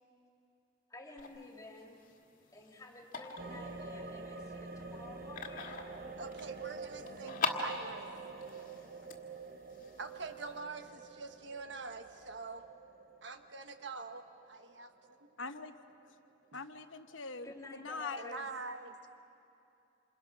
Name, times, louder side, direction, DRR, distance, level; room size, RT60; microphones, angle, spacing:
voice 1, 0.9-2.0 2.5-5.8 17.4-18.5, left 2 dB, 15° left, 0 dB, 2.5 m, -51 dB
sound 1, 1.2-10.6, left 4 dB, 45° left, 1.8 m, -43 dB
sound 2, 3.4-15.6 15.9-16.0, right 4 dB, 50° right, 0.8 m, -47 dB
voice 2, 6.2-8.1 10.0-12.7 13.2-14.9 15.2-15.3 16.5-16.6 18.2-18.9, right 4 dB, 65° right, 7 dB, 1.3 m, -45 dB
voice 3, 15.4-15.7 16.5-18.2, left 4 dB, 80° left, 8 dB, 1.0 m, -42 dB
28.0 x 27.5 x 6.0 m, 2.6 s
head